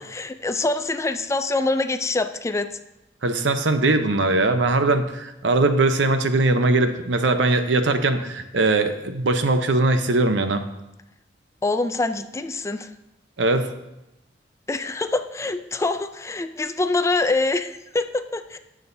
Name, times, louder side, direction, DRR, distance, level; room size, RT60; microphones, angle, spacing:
voice 1, 0.0-2.7 11.6-12.9 14.7-18.6, left 3 dB, 15° left, 9 dB, 0.4 m, -25 dB
voice 2, 3.2-10.6 13.4-13.7, right 2 dB, 85° right, 8 dB, 0.8 m, -20 dB
18.0 x 6.3 x 2.7 m, 0.93 s
head